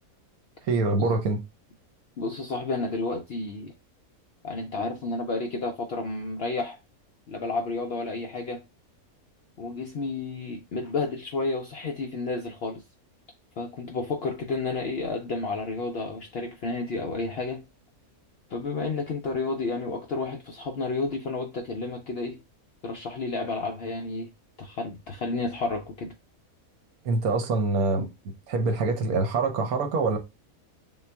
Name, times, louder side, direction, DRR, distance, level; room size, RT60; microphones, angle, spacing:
voice 1, 0.7-1.4 27.0-28.1 28.5-30.2, right 3 dB, 80° right, 1.2 m, -25 dB
voice 2, 2.2-3.7 4.4-6.8 7.3-8.6 9.6-12.8 13.6-17.6 18.5-22.4 22.8-24.3 24.6-26.1, left 3 dB, 65° left, 0.6 m, -31 dB
3.8 x 2.3 x 3.3 m
omnidirectional pair, 1.5 m